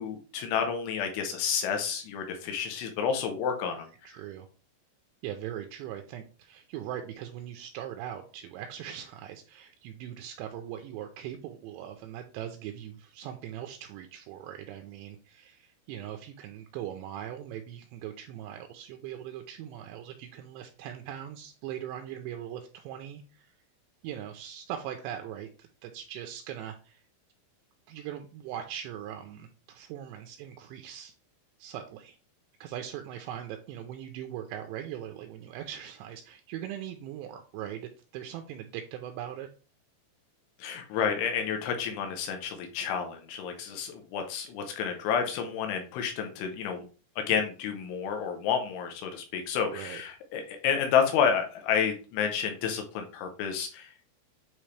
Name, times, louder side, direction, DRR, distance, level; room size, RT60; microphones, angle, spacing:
voice 1, 0.0-4.1 40.6-46.9 47.2-53.9, left 7 dB, 80° left, 5 dB, 3.4 m, -30 dB
voice 2, 4.0-4.5 5.2-23.5 24.0-27.0 27.9-31.1 31.6-32.2 32.6-39.5 49.7-50.0, right 10 dB, 80° right, 5 dB, 2.7 m, -40 dB
9.0 x 3.5 x 3.3 m, 0.36 s
omnidirectional pair, 5.5 m